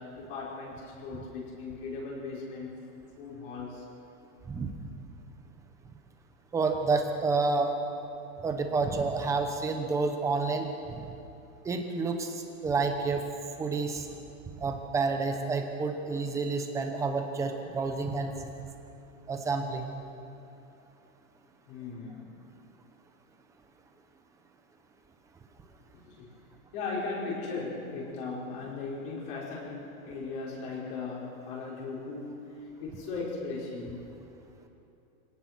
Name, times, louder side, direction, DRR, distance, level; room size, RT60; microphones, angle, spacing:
voice 1, 0.0-2.7 3.2-3.8 21.7-22.3 26.0-26.3 26.7-34.0, left 4 dB, 40° left, -5 dB, 5.7 m, -37 dB
voice 2, 6.5-7.8 8.4-11.0 11.6-13.2 13.6-14.1 14.6-18.3 19.3-19.9, right 4 dB, 5° right, 4 dB, 0.9 m, -29 dB
25.5 x 18.0 x 6.2 m, 2.8 s
supercardioid pair, 180°, 42 cm